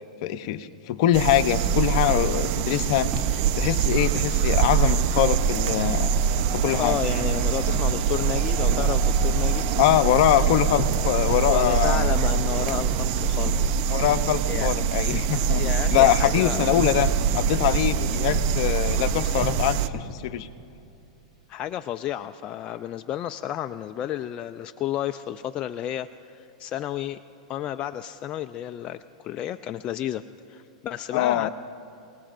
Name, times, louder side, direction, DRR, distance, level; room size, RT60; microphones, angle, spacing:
voice 1, 0.2-6.1 6.5-7.0 9.8-12.1 13.9-15.6 15.9-20.5 31.1-31.5, left 12 dB, 60° left, 10 dB, 0.7 m, -23 dB
sound 1, 1.1-19.9, right 7 dB, 50° right, 0.6 m, -24 dB
sound 2, 1.5-1.7 2.1-2.2 2.6-2.9 3.1-3.3 3.6-3.8 4.2-4.3 4.7-4.9 5.2-5.3 5.7-5.9 6.2-6.3 6.7-6.9 7.2-7.4 7.7-7.9 8.2-8.4 8.7-8.9 9.2-9.4 9.8-10.5 10.8-10.9 11.3-11.5 11.9-12.0 12.4-12.6 12.9-13.1 13.5-13.7 14.0-14.1 14.5-14.8 15.1-15.3 15.7-15.9 16.2-16.4 16.8-17.0 17.3-17.6 17.9-18.1 18.3-18.5 18.9-19.1 19.4-19.6 19.9-20.2, right 1 dB, 10° right, 2.1 m, -35 dB
sound 3, 5.3-12.6, right 4 dB, 75° right, 2.3 m, -38 dB
voice 2, 6.8-9.6 11.5-13.6 14.5-14.7 15.6-16.6 21.5-27.2 27.5-30.2 30.5-31.5, left 11 dB, 35° left, 8 dB, 0.4 m, -31 dB
29.5 x 19.0 x 2.6 m, 2.6 s
hypercardioid pair, 120°, 4 cm